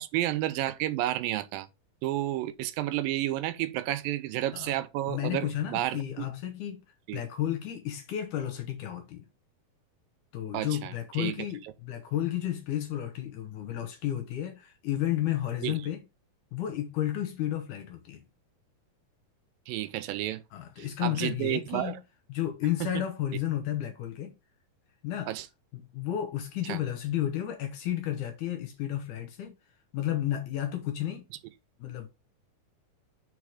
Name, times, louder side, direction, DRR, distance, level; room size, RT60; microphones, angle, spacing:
voice 1, 0.0-1.7 2.0-6.3 7.1-7.2 10.5-11.4 11.6-11.7 15.6-15.8 19.7-20.4 20.8-22.0 22.8-22.9 25.3-25.5 26.7-26.8, right 14 dB, 80° right, 2.3 m, -31 dB
voice 2, 5.1-6.8 7.1-9.2 10.3-16.0 16.5-18.2 20.5-21.9 22.3-24.4 25.0-25.3 25.9-29.6 29.9-31.2 31.8-32.1, left 12 dB, 70° left, 2.0 m, -32 dB
4.8 x 4.6 x 4.8 m
omnidirectional pair, 4.1 m